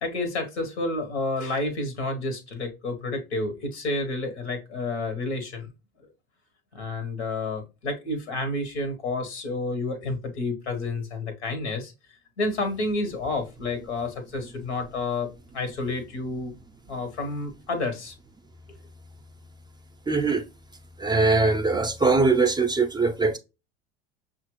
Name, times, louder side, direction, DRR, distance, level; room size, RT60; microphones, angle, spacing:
voice 1, 0.0-5.7 6.0-6.1 6.7-11.9 12.4-16.5 16.9-18.1, left 2 dB, 85° left, 1.1 m, -30 dB
voice 2, 20.1-20.4 21.0-23.4, right 3 dB, 15° right, 0.4 m, -21 dB
5.7 x 2.5 x 3.0 m
hypercardioid pair, 80°, 33 cm